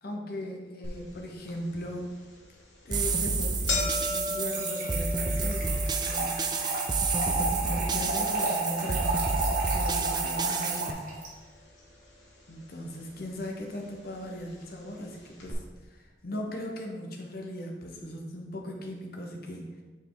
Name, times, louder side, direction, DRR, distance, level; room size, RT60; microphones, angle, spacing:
voice 1, 0.0-2.1 2.8-6.4 7.3-9.2 9.7-11.1 12.5-19.8, equal, 55° left, 1 dB, 0.9 m, -38 dB
sound 1, 0.8-0.9 1.5-1.6 2.4-2.6 2.9-3.0 3.3-11.5 11.8-12.5 13.3-13.4 14.4-14.5 14.7-14.8 15.4-15.5, left 3 dB, 80° left, 1.1 m, -38 dB
sound 2, 2.9-10.9, right 4 dB, 25° right, 0.3 m, -30 dB
Trickle dribble / Fill (with liquid), 3.9-11.3, right 2 dB, 45° right, 1.3 m, -32 dB
5.8 x 4.4 x 3.8 m, 1.3 s
head